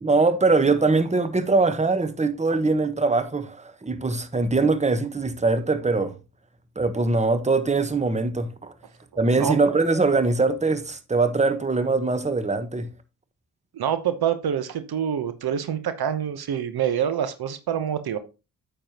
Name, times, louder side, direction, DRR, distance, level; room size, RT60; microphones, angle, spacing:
voice 1, 0.0-6.1 6.8-8.7 9.2-12.9, right 3 dB, 15° right, 1.2 m, -22 dB
voice 2, 13.7-18.2, right 9 dB, 60° right, 1.0 m, -26 dB
8.9 x 6.8 x 2.9 m
hypercardioid pair, 40°, 43 cm